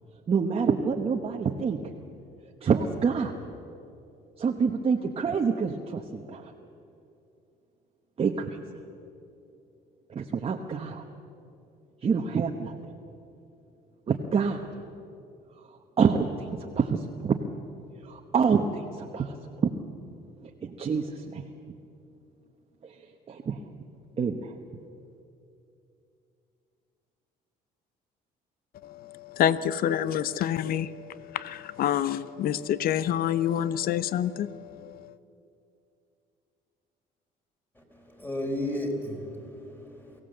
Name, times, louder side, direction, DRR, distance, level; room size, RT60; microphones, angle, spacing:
voice 1, 0.3-1.9 2.6-3.3 4.4-6.5 8.2-8.6 10.1-11.0 12.0-12.9 14.1-14.8 15.5-17.4 18.0-19.8 20.4-21.5 22.8-23.6 24.2-24.6, right 5 dB, 35° right, 2 dB, 1.2 m, -27 dB
voice 2, 28.8-34.6, left 10 dB, 60° left, 16 dB, 0.7 m, -27 dB
voice 3, 37.8-40.2, left 1 dB, 10° left, 1 dB, 4.1 m, -34 dB
23.5 x 16.0 x 7.9 m, 2.7 s
cardioid pair, 110°, 17 cm